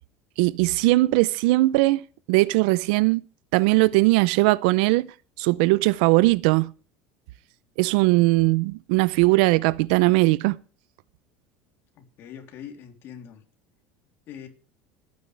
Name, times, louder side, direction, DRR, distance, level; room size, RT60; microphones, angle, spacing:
voice 1, 0.4-2.0 2.3-3.2 3.5-5.1 5.4-6.7 7.8-10.6, right 21 dB, 75° right, 0.6 m, -20 dB
voice 2, 12.0-13.4 14.3-14.5, left 9 dB, 50° left, 3.3 m, -42 dB
27.0 x 9.6 x 3.3 m
supercardioid pair, 115°, 5 cm